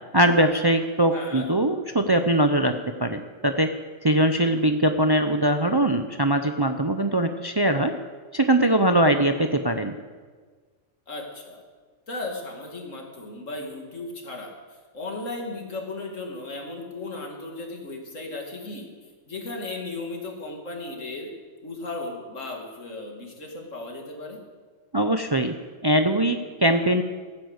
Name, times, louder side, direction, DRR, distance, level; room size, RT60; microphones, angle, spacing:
voice 1, 0.1-3.7 4.0-7.9 8.3-9.9 24.9-25.5 25.8-27.0, right 1 dB, 25° right, 7 dB, 0.5 m, -21 dB
voice 2, 1.1-1.5 11.1-11.6 12.1-14.5 14.9-18.9 19.3-21.3 21.6-24.4, left 2 dB, 85° left, 1 dB, 2.7 m, -35 dB
15.0 x 9.8 x 8.0 m, 1.5 s
omnidirectional pair, 1.3 m